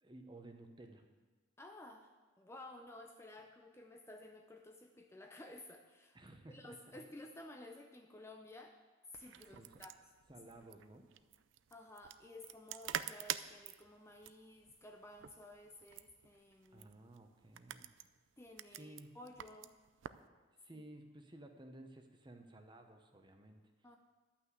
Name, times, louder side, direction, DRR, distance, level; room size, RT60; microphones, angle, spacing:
voice 1, 0.0-1.0 6.1-7.0 9.5-9.8 10.3-11.1 16.7-17.9 18.7-19.1 20.6-23.6, right 1 dB, 25° right, 5 dB, 0.9 m, -55 dB
voice 2, 1.6-2.1 2.4-6.2 6.5-8.8 9.1-9.9 11.7-16.9 18.4-19.7 20.7-20.8 23.8-24.0, left 1 dB, 15° left, 4 dB, 0.5 m, -54 dB
sound 1, 9.1-20.3, right 10 dB, 70° right, 0.4 m, -48 dB
11.5 x 5.9 x 8.2 m, 1.3 s
head